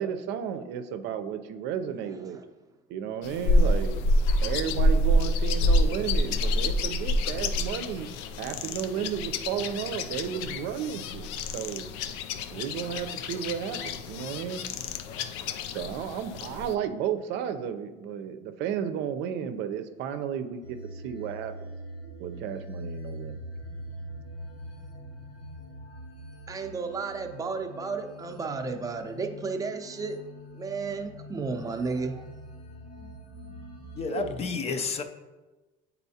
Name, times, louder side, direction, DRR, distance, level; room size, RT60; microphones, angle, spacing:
voice 1, 0.0-2.4 2.9-4.0 4.4-8.1 8.4-11.9 12.5-14.6 15.7-21.7 22.2-23.4 34.1-34.3, right 8 dB, 70° right, 8 dB, 0.6 m, -33 dB
sound 1, 3.2-16.7, left 1 dB, 90° left, 0.4 m, -27 dB
sound 2, 20.6-34.4, equal, 70° left, 1.4 m, -43 dB
voice 2, 26.5-30.2 30.5-32.3, right 4 dB, 20° right, 5 dB, 0.6 m, -33 dB
voice 3, 34.0-35.0, left 5 dB, 35° left, 7 dB, 0.5 m, -30 dB
8.2 x 4.2 x 2.8 m, 1.2 s
cardioid pair, 120°, 19 cm